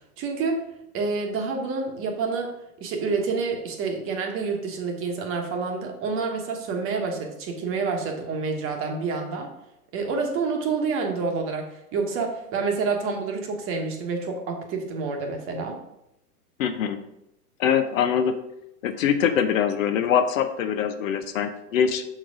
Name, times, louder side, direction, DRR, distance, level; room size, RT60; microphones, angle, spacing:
voice 1, 0.2-0.7 0.9-9.5 9.9-15.8, right 4 dB, 25° right, 3 dB, 1.2 m, -28 dB
voice 2, 16.6-17.0 17.6-18.4 18.8-22.0, left 8 dB, 55° left, 9 dB, 0.8 m, -23 dB
6.3 x 4.5 x 4.8 m, 0.83 s
hypercardioid pair, 135°, 47 cm